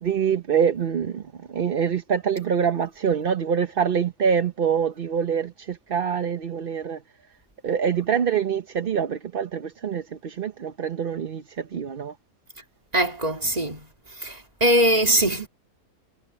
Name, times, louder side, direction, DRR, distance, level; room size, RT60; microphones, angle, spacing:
voice 1, 0.0-7.0 7.6-12.1, right 7 dB, 45° right, 0.8 m, -25 dB
voice 2, 12.9-13.8 14.2-15.5, equal, 25° right, 3.0 m, -21 dB
omnidirectional pair, 1.6 m